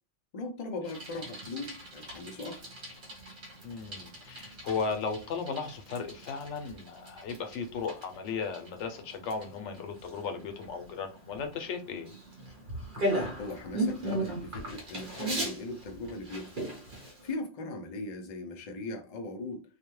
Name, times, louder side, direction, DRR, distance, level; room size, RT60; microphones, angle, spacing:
voice 1, 0.3-2.6 13.4-16.6 17.0-19.6, left 2 dB, 50° left, 0.4 m, -39 dB
Bicycle, 0.8-17.3, right 1 dB, 50° right, 1.0 m, -38 dB
voice 2, 3.6-12.1, left 5 dB, 85° left, 0.9 m, -36 dB
2.4 x 2.2 x 3.0 m
omnidirectional pair, 1.2 m